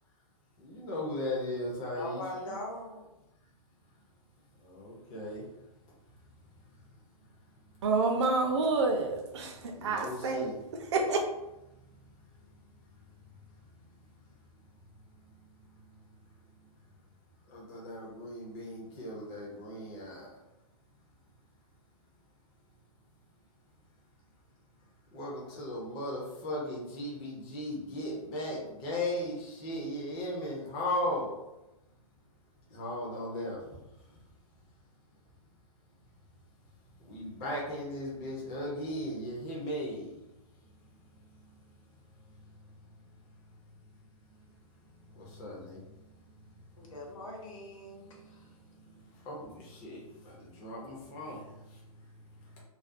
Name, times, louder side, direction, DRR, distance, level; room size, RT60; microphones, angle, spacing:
voice 1, 0.6-2.5 4.6-5.4 9.7-10.5 17.5-20.3 25.1-31.3 32.7-33.6 37.0-40.1 45.1-45.8 48.3-48.4 48.8-48.9 49.2-51.8, left 1 dB, 20° left, -4 dB, 0.4 m, -37 dB
voice 2, 1.8-3.0 46.8-48.5, left 1 dB, 60° left, -1 dB, 0.9 m, -42 dB
voice 3, 7.8-11.2, right 3 dB, 50° right, 4 dB, 0.4 m, -29 dB
2.3 x 2.2 x 2.5 m, 0.94 s
hypercardioid pair, 155°, 19 cm